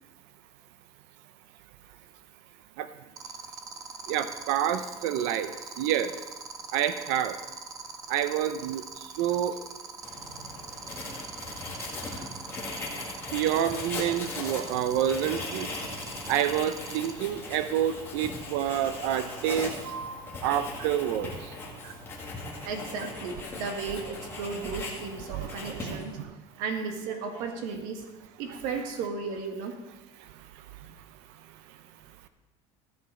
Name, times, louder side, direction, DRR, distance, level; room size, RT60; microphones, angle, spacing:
sound 1, 3.2-17.1, right 5 dB, 25° right, 0.8 m, -41 dB
voice 1, 4.1-6.1 6.7-7.4 8.1-9.5 13.3-15.7 16.3-21.5 21.8-21.9 25.3-26.3, right 10 dB, 85° right, 11 dB, 0.6 m, -28 dB
Writing, 10.0-26.2, left 3 dB, 15° left, 1.8 m, -39 dB
voice 2, 12.1-12.7 22.6-26.1 26.6-28.0 28.4-29.7, right 5 dB, 70° right, 4 dB, 1.6 m, -35 dB
14.5 x 7.7 x 4.3 m, 1.1 s
cardioid pair, 170°, 14 cm